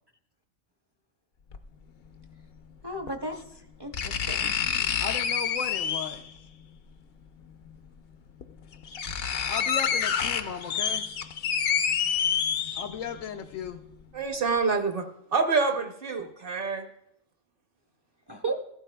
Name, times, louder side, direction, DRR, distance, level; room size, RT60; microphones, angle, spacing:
sound 1, 1.5-1.6 3.1-3.2 3.9-6.3 7.7-7.8 8.4-8.5 8.7-13.2 13.6-13.7, left 7 dB, 60° left, 0.7 m, -28 dB
voice 1, 2.8-4.5 18.3-18.5, right 2 dB, 30° right, 0.5 m, -35 dB
voice 2, 5.0-6.3 9.5-11.1 12.7-13.8, left 7 dB, 85° left, 1.0 m, -36 dB
voice 3, 14.1-16.9, right 4 dB, 50° right, 0.9 m, -27 dB
15.0 x 12.5 x 2.2 m
omnidirectional pair, 1.3 m